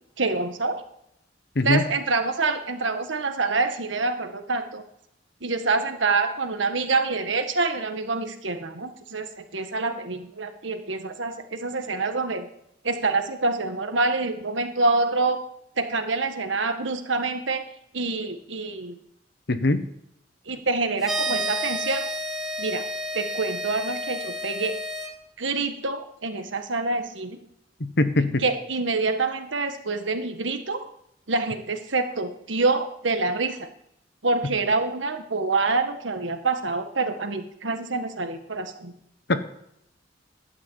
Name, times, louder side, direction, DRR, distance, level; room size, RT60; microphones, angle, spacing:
voice 1, 0.2-0.8 1.6-4.8 5.4-12.5 12.8-15.4 15.8-17.7 17.9-19.0 20.5-22.1 22.6-22.8 23.1-24.8 25.4-27.4 28.4-30.9 31.3-33.7 34.2-38.9, right 3 dB, 90° right, 7 dB, 1.6 m, -26 dB
voice 2, 19.5-19.8 27.8-28.4 39.3-39.4, left 2 dB, 60° left, 10 dB, 1.2 m, -22 dB
sound 1, 21.0-25.1, equal, ahead, 2.3 m, -30 dB
12.0 x 7.6 x 8.7 m, 0.76 s
head